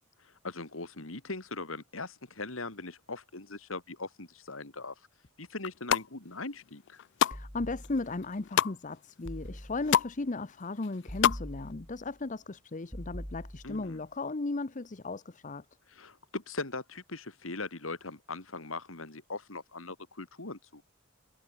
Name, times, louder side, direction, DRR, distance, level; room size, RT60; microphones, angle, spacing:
voice 1, 0.2-4.9 5.4-7.0 13.6-14.0 15.9-20.8, left 3 dB, 90° left, 2.9 m, -40 dB
sound 1, 5.6-6.1 6.6-7.4 7.8-8.7 9.3-9.4 9.6-10.1 10.4-11.4 11.7-11.8, left 9 dB, 60° left, 0.4 m, -27 dB
voice 2, 7.3-15.7, left 3 dB, 40° left, 0.8 m, -36 dB
sound 2, 7.3-8.3 9.2-10.1 11.1-12.2 12.9-14.0, equal, 5° right, 6.0 m, -44 dB
head